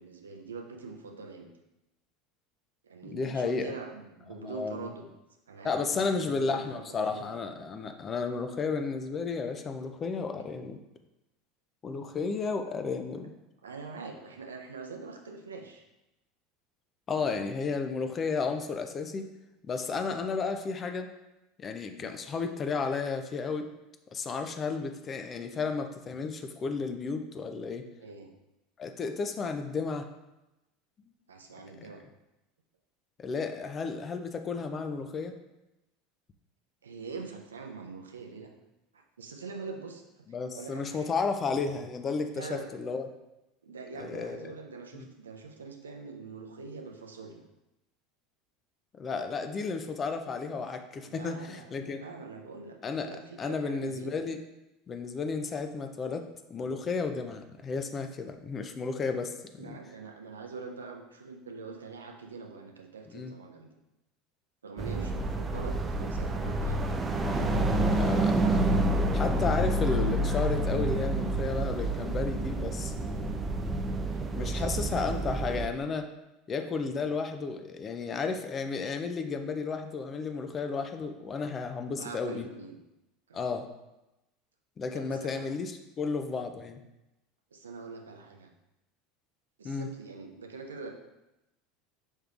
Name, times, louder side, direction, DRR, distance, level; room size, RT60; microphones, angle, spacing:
voice 1, 0.0-1.5 2.8-5.1 5.5-7.3 10.3-10.5 13.6-15.9 17.1-17.5 19.9-20.1 22.0-22.2 24.4-24.5 28.0-28.3 31.3-32.0 36.8-38.5 38.9-40.0 40.5-41.1 42.3-42.7 43.6-47.4 51.0-52.8 53.0-54.2 59.6-63.7 64.6-66.9 67.3-68.4 74.1-75.1 76.8-77.0 82.0-82.8 83.3-83.5 84.9-85.5 87.5-88.5 89.6-90.9, right 4 dB, 85° right, 3 dB, 0.5 m, -44 dB
voice 2, 3.0-3.7 4.4-4.9 5.6-10.8 11.8-13.4 17.1-19.3 19.6-21.1 21.6-23.7 24.1-27.8 28.8-30.1 33.2-35.3 40.3-43.0 44.0-44.5 44.9-45.1 48.9-52.0 52.8-53.1 53.4-54.4 54.9-59.8 63.1-63.3 68.0-68.8 69.1-73.3 74.3-76.1 76.5-82.5 83.3-83.7 84.8-86.8 89.6-89.9, left 4 dB, 35° left, 6 dB, 0.5 m, -33 dB
sound 1, 64.8-75.7, right 2 dB, 25° right, 0.4 m, -28 dB
5.4 x 3.2 x 2.4 m, 0.96 s
hypercardioid pair, 75°, 0 cm